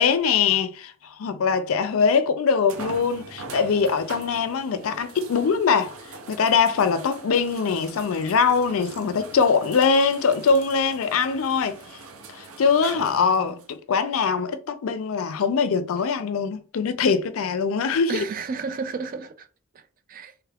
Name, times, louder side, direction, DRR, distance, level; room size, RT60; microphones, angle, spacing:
voice 1, 0.0-6.0 6.3-11.8 12.3-18.2, left 5 dB, 70° left, 0.4 m, -22 dB
sound 1, 1.6-1.7 2.7-13.7 14.5-14.6 18.0-18.1, right 4 dB, 80° right, 0.6 m, -42 dB
voice 2, 13.1-13.6 18.1-19.5 19.7-19.8 20.1-20.3, right 5 dB, 40° right, 0.3 m, -33 dB
3.0 x 2.3 x 3.3 m
head